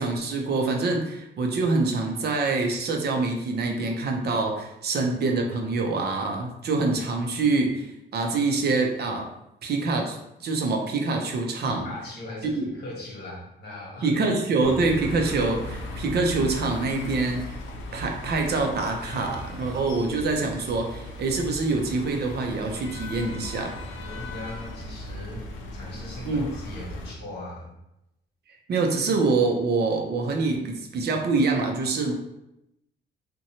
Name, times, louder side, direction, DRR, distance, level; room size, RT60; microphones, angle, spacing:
voice 1, 0.0-9.3 9.6-11.9 12.6-12.7 14.0-17.6 17.9-23.7 26.3-26.4 28.7-32.1, right 3 dB, 55° right, 2 dB, 0.5 m, -25 dB
voice 2, 11.6-14.1 24.0-27.8, left 2 dB, 60° left, -3 dB, 1.1 m, -39 dB
sound 1, 14.6-27.1, left 1 dB, 80° left, 0.5 m, -37 dB
2.7 x 2.2 x 2.8 m, 0.86 s
cardioid pair, 90°, 20 cm